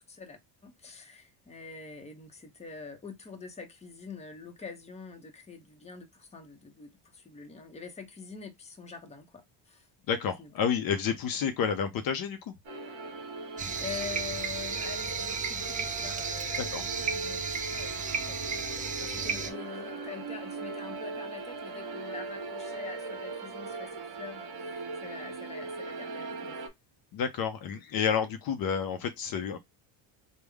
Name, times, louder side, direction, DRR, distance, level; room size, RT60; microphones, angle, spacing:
voice 1, 0.1-9.9 10.4-10.5 13.8-17.4 17.7-26.7, left 5 dB, 15° left, 0.8 m, -45 dB
voice 2, 10.1-12.5 16.7-16.8 27.1-29.6, left 7 dB, 50° left, 0.6 m, -30 dB
sound 1, 12.6-26.7, right 3 dB, 55° right, 1.3 m, -39 dB
sound 2, 13.6-19.5, right 5 dB, 20° right, 0.4 m, -34 dB
3.5 x 2.2 x 3.3 m
cardioid pair, 115°, 45 cm